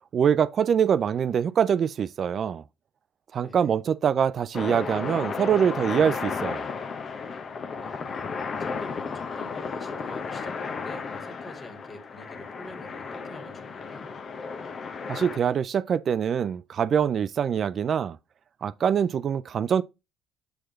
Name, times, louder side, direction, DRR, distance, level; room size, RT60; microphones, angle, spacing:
voice 1, 0.1-2.6 3.3-6.7 15.1-18.2 18.6-19.8, right 8 dB, 50° right, 0.3 m, -24 dB
voice 2, 3.3-3.8 7.5-8.3 8.6-14.1, left 2 dB, 25° left, 1.8 m, -46 dB
sound 1, 4.5-15.4, left 5 dB, 50° left, 0.8 m, -34 dB
7.6 x 4.7 x 3.1 m
hypercardioid pair, 60°, 0 cm